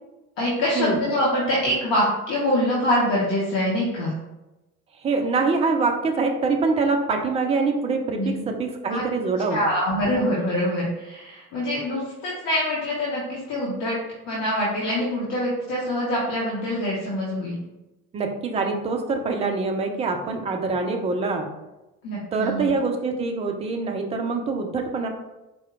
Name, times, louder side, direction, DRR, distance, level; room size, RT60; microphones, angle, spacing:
voice 1, 0.4-4.1 8.2-8.5 8.9-9.0 9.5-14.0 14.2-17.6 22.0-22.7, left 1 dB, 50° left, -5 dB, 1.0 m, -24 dB
voice 2, 5.0-9.6 18.1-21.5 22.3-25.1, right 4 dB, 15° right, 3 dB, 0.3 m, -24 dB
4.2 x 2.2 x 3.6 m, 1.0 s
figure-of-eight pair, 60°, 45 cm